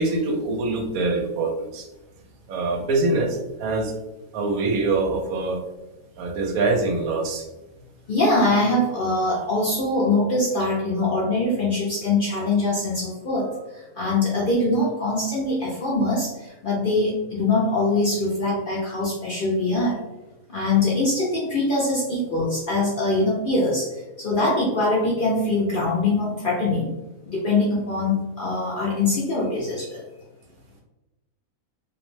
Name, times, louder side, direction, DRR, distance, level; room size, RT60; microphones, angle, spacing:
voice 1, 0.0-1.9 2.5-3.9 4.3-5.6 6.2-7.5, right 3 dB, 90° right, 3 dB, 1.0 m, -24 dB
voice 2, 8.1-20.0 20.5-26.9 27.3-30.0, left 2 dB, 60° left, -5 dB, 0.5 m, -23 dB
2.6 x 2.1 x 3.0 m, 1.0 s
omnidirectional pair, 1.5 m